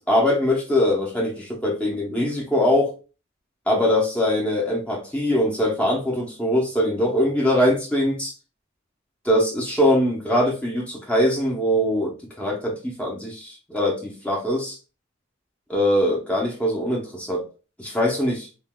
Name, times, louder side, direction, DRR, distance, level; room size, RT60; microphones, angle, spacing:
voice 1, 0.1-2.9 3.7-8.3 9.2-14.8 15.7-17.5 17.8-18.5, left 1 dB, 5° left, 0.8 m, -22 dB
5.8 x 2.6 x 2.2 m
head